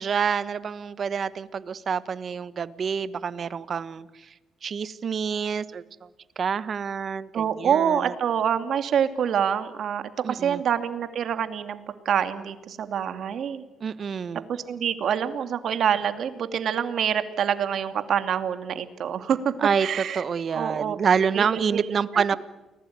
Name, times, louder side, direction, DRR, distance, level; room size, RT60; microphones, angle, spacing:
voice 1, 0.0-4.1 4.6-5.8 6.4-8.1 10.2-10.6 13.8-14.4 19.6-19.9 20.1-22.3, right 6 dB, 50° right, 15 dB, 1.4 m, -27 dB
voice 2, 7.3-13.6 14.5-19.5 19.8-20.2 20.5-21.0 21.3-21.8 22.1-22.4, right 8 dB, 65° right, 9 dB, 2.5 m, -26 dB
29.5 x 20.5 x 9.5 m, 1.1 s
cardioid pair, 90°, 0 cm